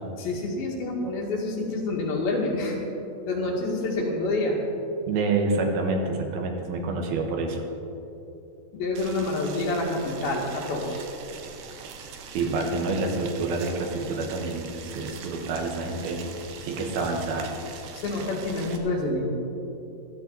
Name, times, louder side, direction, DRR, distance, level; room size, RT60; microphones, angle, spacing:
voice 1, 0.2-2.8 3.3-4.6 8.7-11.0 18.0-19.3, left 2 dB, 85° left, -2 dB, 3.9 m, -27 dB
voice 2, 5.1-7.6 12.3-16.2 16.6-17.5, right 3 dB, 90° right, 2 dB, 3.2 m, -27 dB
Boiling, 9.0-18.8, right 6 dB, 70° right, 2.2 m, -42 dB
15.0 x 13.0 x 4.1 m, 2.9 s
omnidirectional pair, 4.1 m